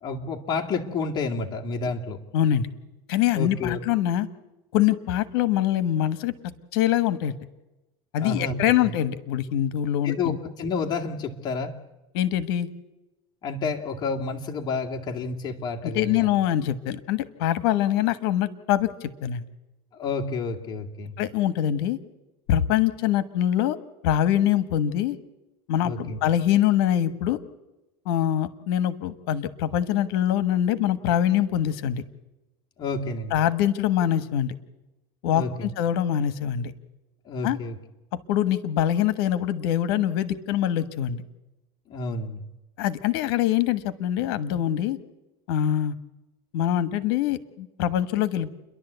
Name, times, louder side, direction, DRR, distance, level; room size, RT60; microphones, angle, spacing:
voice 1, 0.0-2.2 3.3-3.8 8.2-8.9 10.0-11.7 13.4-16.3 20.0-21.1 25.8-26.2 32.8-33.4 35.3-35.7 37.3-37.8 41.9-42.4, left 4 dB, 35° left, 1 dB, 2.1 m, -30 dB
voice 2, 2.3-2.7 3.1-4.3 4.7-6.3 6.7-7.3 8.1-10.4 12.1-12.7 15.8-19.4 21.2-22.0 22.5-23.8 24.0-25.2 25.7-27.4 28.0-32.0 33.3-34.5 35.2-36.7 37.4-37.6 38.3-41.2 42.8-45.0 45.5-45.9 46.5-48.5, left 11 dB, 75° left, 14 dB, 1.3 m, -24 dB
29.0 x 11.5 x 8.1 m, 1.0 s
supercardioid pair, 135°, 13 cm